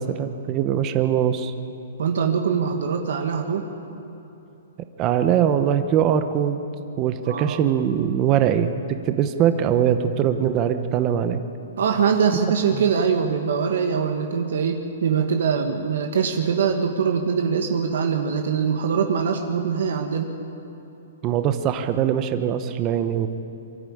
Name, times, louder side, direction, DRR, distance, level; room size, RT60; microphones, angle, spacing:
voice 1, 0.0-1.5 5.0-6.6 7.0-11.4 12.7-12.8 21.2-23.3, right 9 dB, 25° right, 9 dB, 0.8 m, -22 dB
voice 2, 2.0-3.6 7.2-7.6 11.8-20.3, right 6 dB, 70° right, 4 dB, 1.5 m, -23 dB
24.0 x 13.5 x 8.6 m, 3.0 s
hypercardioid pair, 160°, 0 cm